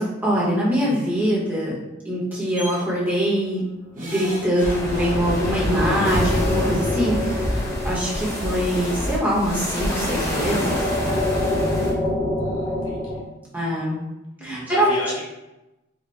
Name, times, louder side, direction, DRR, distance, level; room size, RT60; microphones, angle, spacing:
voice 1, 0.0-1.8 2.0-3.6 3.9-10.8 13.5-14.0 14.4-15.0, equal, 10° right, -7 dB, 0.9 m, -23 dB
sound 1, 2.6-2.8 4.0-5.6 6.8-6.9 7.2-7.3, equal, 40° right, 0.9 m, -36 dB
sound 2, 4.3-13.2, left 1 dB, 40° left, 1.0 m, -27 dB
sound 3, 4.6-11.9, left 1 dB, 15° left, 0.6 m, -27 dB
voice 2, 12.4-13.2 14.4-15.2, left 1 dB, 80° left, -4 dB, 1.0 m, -35 dB
4.2 x 2.2 x 3.3 m, 0.96 s
head